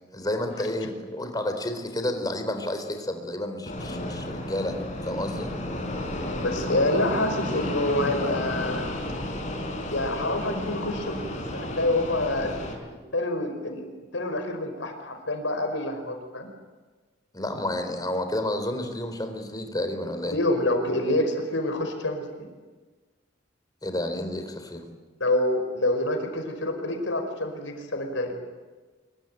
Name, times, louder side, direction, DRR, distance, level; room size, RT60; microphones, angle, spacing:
voice 1, 0.1-4.8 5.0-5.5 17.3-20.3 23.8-24.8, left 1 dB, 20° left, 6 dB, 3.9 m, -30 dB
Fixed-wing aircraft airplane, 3.7-12.7, left 1 dB, 40° left, 5.8 m, -32 dB
voice 2, 6.1-8.9 9.9-12.5 13.1-13.9 14.1-16.5 20.3-22.5 25.2-28.3, left 1 dB, 80° left, 6 dB, 5.4 m, -27 dB
26.0 x 23.0 x 9.3 m, 1.3 s
head